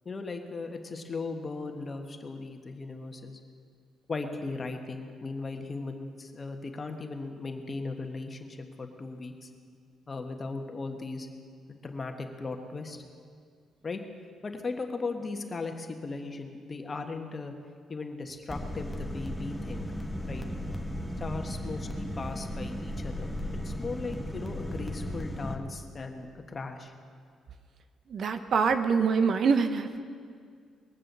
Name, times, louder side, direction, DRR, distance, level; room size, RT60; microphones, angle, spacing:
voice 1, 0.0-3.4 4.1-9.5 10.1-11.3 11.7-13.0 13.8-14.0 14.4-17.5 17.9-19.9 20.3-20.4 21.2-23.4 23.6-26.9, left 3 dB, 30° left, 5 dB, 1.5 m, -37 dB
sound 1, 18.5-25.6, equal, 5° left, 1.3 m, -35 dB
voice 2, 28.1-30.0, right 5 dB, 60° right, 9 dB, 0.9 m, -25 dB
21.0 x 7.5 x 6.9 m, 2.2 s
cardioid pair, 90°, 0 cm